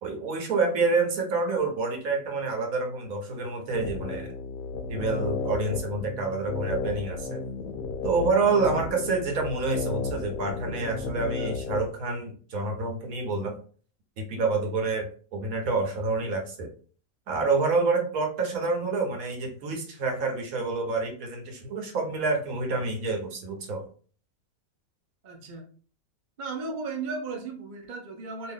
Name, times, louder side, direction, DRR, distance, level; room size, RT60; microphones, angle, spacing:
voice 1, 0.0-4.3 4.9-7.4 8.0-13.5 14.2-15.1 15.3-16.7 17.3-23.8, right 3 dB, 70° right, 2 dB, 1.3 m, -28 dB
sound 1, 3.7-11.9, left 3 dB, 65° left, 0.6 m, -33 dB
voice 2, 25.2-25.6 26.4-28.5, right 4 dB, 45° right, 2 dB, 0.6 m, -35 dB
2.7 x 2.6 x 3.5 m, 0.42 s
omnidirectional pair, 1.6 m